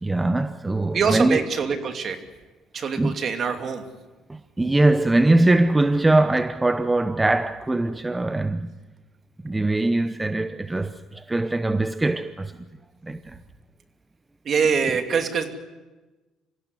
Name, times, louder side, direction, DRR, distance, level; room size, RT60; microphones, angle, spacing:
voice 1, 0.0-1.4 3.0-3.2 4.3-8.7 9.4-12.5 13.0-13.4, right 2 dB, 15° right, 0.9 m, -22 dB
voice 2, 0.9-2.2 2.7-3.8 14.4-15.5, right 6 dB, 50° right, 2.7 m, -24 dB
25.5 x 16.0 x 9.8 m
supercardioid pair, 85°, 0 cm